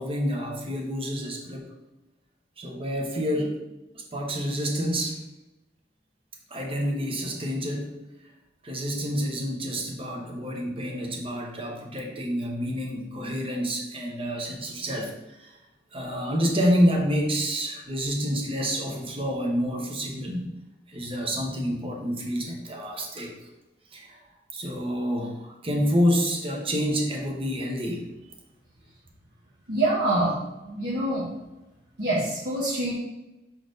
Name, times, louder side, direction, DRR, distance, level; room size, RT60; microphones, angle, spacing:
voice 1, 0.0-1.6 2.6-3.6 3.9-5.2 6.5-8.0 8.6-15.5 15.9-20.5 20.9-23.3 23.9-24.2 24.5-28.1, equal, 30° right, 1 dB, 1.1 m, -28 dB
voice 2, 29.7-31.3 32.0-32.9, right 1 dB, 65° right, -8 dB, 1.4 m, -26 dB
6.4 x 4.3 x 4.0 m, 0.99 s
head